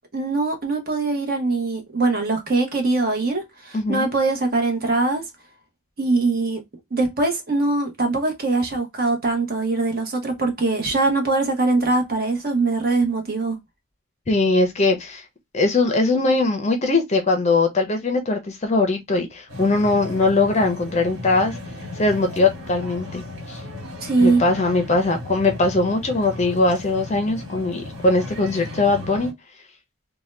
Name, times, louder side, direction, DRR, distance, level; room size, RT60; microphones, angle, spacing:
voice 1, 0.1-5.2 6.0-6.6 6.9-13.6 24.0-24.4, right 3 dB, 45° right, 1.0 m, -22 dB
voice 2, 3.7-4.1 14.3-15.2 15.5-21.6 22.0-23.6 24.2-29.3, left 3 dB, 30° left, 0.6 m, -21 dB
sound 1, 19.5-29.3, left 2 dB, 60° right, 1.8 m, -35 dB
2.7 x 2.2 x 3.1 m
head